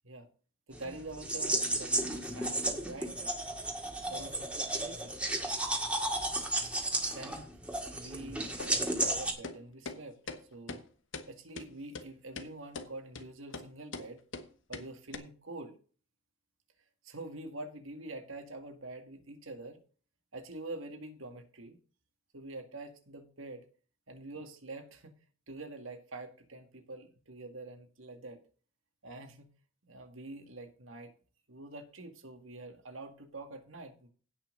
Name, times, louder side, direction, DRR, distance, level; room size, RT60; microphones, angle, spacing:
sound 1, 0.7-9.3, right 1 dB, 5° right, 1.9 m, -33 dB
voice 1, 0.7-3.3 4.1-5.2 7.1-7.5 7.9-10.2 10.5-10.8 11.3-14.2 14.7-15.8 17.0-19.8 20.3-21.8 22.3-23.7 24.1-25.2 25.5-28.4 29.0-29.5 29.8-31.1 31.5-34.1, right 2 dB, 85° right, 6 dB, 2.1 m, -46 dB
sound 2, 8.6-8.7 9.0-9.1 9.4-9.6 9.9-10.0 10.3-10.4 10.7-10.8 11.1-11.3 11.6-11.7 11.9-12.0 12.4-12.5 12.7-12.9 13.2-13.3 13.5-13.7 13.9-14.1 14.3-14.5 14.7-14.9 15.1-15.2, left 3 dB, 65° left, 1.2 m, -41 dB
16.5 x 5.9 x 3.9 m, 0.40 s
head